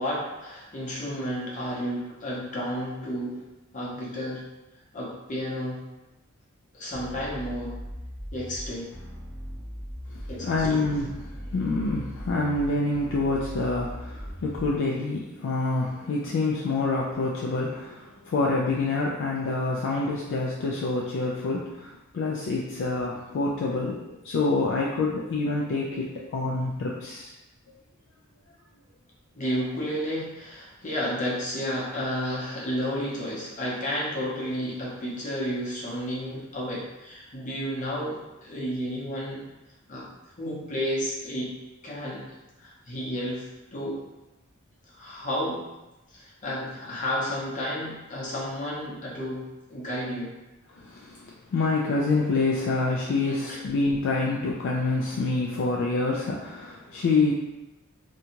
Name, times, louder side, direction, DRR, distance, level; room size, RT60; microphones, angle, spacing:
voice 1, 0.0-3.4 3.7-4.4 4.9-5.8 6.7-7.8 8.3-8.9 10.3-10.8 29.3-39.4 39.9-40.1 40.4-41.5 41.8-42.2 42.6-44.0 44.9-45.6 46.1-50.4 53.2-53.6, equal, 35° left, -5 dB, 0.7 m, -32 dB
sound 1, 6.9-14.9, equal, 5° left, 0.6 m, -39 dB
voice 2, 10.1-27.3 50.8-57.3, left 3 dB, 55° left, -3 dB, 0.3 m, -27 dB
2.7 x 2.3 x 2.8 m, 1.0 s
head